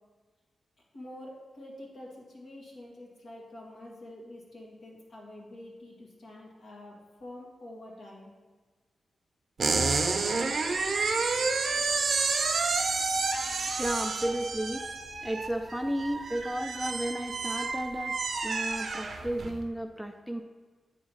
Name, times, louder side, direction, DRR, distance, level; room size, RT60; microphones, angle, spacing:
voice 1, 0.9-8.3, left 1 dB, 70° left, -3 dB, 1.7 m, -47 dB
sound 1, 9.6-19.6, right 4 dB, 60° right, 0.6 m, -30 dB
voice 2, 13.6-14.8 15.2-20.4, right 1 dB, ahead, 6 dB, 0.4 m, -33 dB
8.4 x 2.9 x 5.5 m, 1.4 s
cardioid pair, 70°, 0 cm